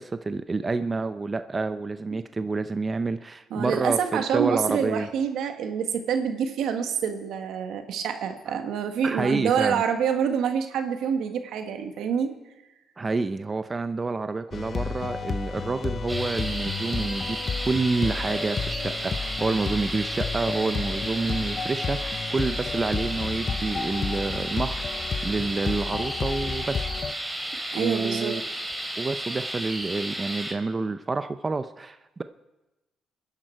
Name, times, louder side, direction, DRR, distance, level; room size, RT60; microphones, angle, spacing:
voice 1, 0.0-5.1 8.5-8.6 9.0-9.8 13.0-17.4 17.6-26.9 27.7-28.4 29.0-32.2, right 3 dB, 30° right, 10 dB, 0.6 m, -28 dB
voice 2, 3.5-12.3 27.7-28.4, right 7 dB, 80° right, 6 dB, 1.5 m, -27 dB
sound 1, 14.5-27.1, left 5 dB, 45° left, 0.8 m, -32 dB
sound 2, 16.1-30.5, right 1 dB, 10° right, 2.7 m, -33 dB
25.5 x 10.5 x 4.6 m, 1.0 s
cardioid pair, 90°, 0 cm